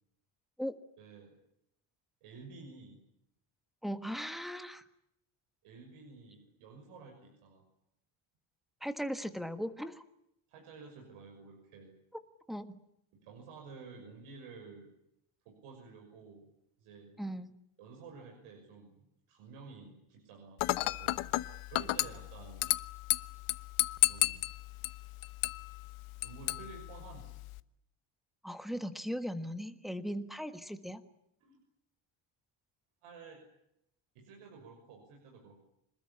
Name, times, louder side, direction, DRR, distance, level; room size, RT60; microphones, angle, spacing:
voice 1, 1.0-1.4 2.2-3.0 5.6-7.6 10.5-11.9 13.1-14.9 15.4-16.5 16.8-17.2 17.8-21.2 21.7-22.7 24.1-24.5 26.2-27.3 31.4-31.6 33.0-33.4 34.1-35.6, right 4 dB, 85° right, 2 dB, 6.4 m, -52 dB
voice 2, 3.8-4.8 8.8-10.0 12.5-12.8 17.2-17.5 28.4-31.0, equal, ahead, 8 dB, 1.4 m, -38 dB
Dishes pots and pans / Glass, 20.6-27.6, left 18 dB, 75° left, 1.1 m, -34 dB
26.5 x 20.5 x 9.9 m, 0.80 s
cardioid pair, 170°, 50 cm